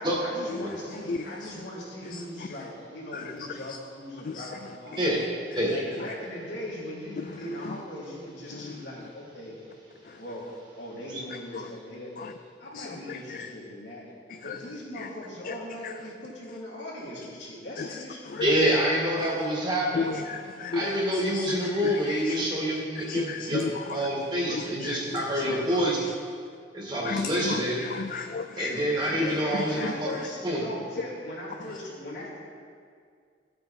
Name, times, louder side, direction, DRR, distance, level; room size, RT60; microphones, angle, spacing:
voice 1, 0.0-5.2 5.7-9.6 10.2-10.5 10.7-12.1 12.6-14.0 14.4-18.8 29.0-32.4, left 1 dB, 75° left, -6 dB, 3.3 m, -39 dB
voice 2, 1.1-1.5 2.1-2.2 3.1-3.2 4.2-4.5 8.5-8.6 10.1-10.2 12.2-12.3 12.7-13.5 14.5-14.6 15.0-15.1 15.4-15.5 15.8-15.9 17.8-18.0 18.3-18.6 19.9-22.5 23.0-24.1 24.5-25.9 27.0-28.8 29.5-29.9, left 5 dB, 45° left, 8 dB, 0.3 m, -34 dB
voice 3, 18.4-20.1 20.7-26.0 26.7-27.8 28.6-30.1 30.4-30.6, equal, 25° right, -3 dB, 2.0 m, -27 dB
13.5 x 8.1 x 4.3 m, 2.1 s
head